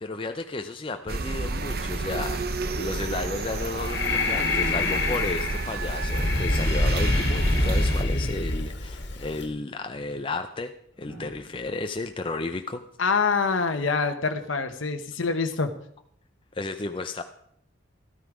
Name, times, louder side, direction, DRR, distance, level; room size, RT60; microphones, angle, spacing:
voice 1, 0.0-10.7 11.0-12.8 16.5-17.2, left 2 dB, 25° left, 6 dB, 0.5 m, -33 dB
sound 1, 1.1-8.0, right 3 dB, 50° right, 0.8 m, -31 dB
Breathing, 3.5-9.5, left 2 dB, 65° left, 1.8 m, -26 dB
sound 2, 10.9-14.0 15.6-15.9, right 2 dB, 5° right, 7.2 m, -51 dB
voice 2, 13.0-15.7, left 4 dB, 85° left, 6 dB, 0.9 m, -25 dB
13.0 x 13.0 x 4.9 m, 0.69 s
head